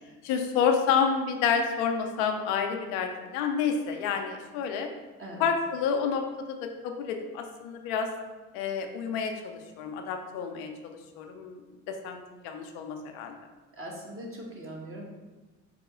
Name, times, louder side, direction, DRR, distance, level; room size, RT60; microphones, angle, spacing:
voice 1, 0.2-4.9 5.4-8.1 8.5-11.6 11.9-13.4, left 6 dB, 85° left, 5 dB, 0.5 m, -29 dB
voice 2, 13.7-15.1, equal, 35° right, -1 dB, 1.4 m, -41 dB
4.9 x 2.9 x 3.7 m, 1.2 s
hypercardioid pair, 55°, 35 cm